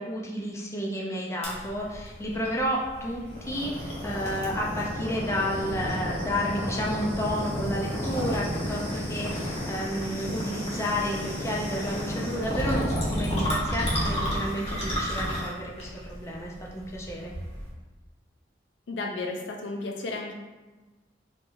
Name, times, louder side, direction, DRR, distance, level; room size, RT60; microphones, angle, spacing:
voice 1, 0.0-17.3, equal, 15° left, -3 dB, 0.5 m, -31 dB
sound 1, 1.4-17.7, equal, 35° left, 0.9 m, -31 dB
voice 2, 18.9-20.3, left 3 dB, 80° left, 2 dB, 0.5 m, -33 dB
3.5 x 3.2 x 2.6 m, 1.2 s
head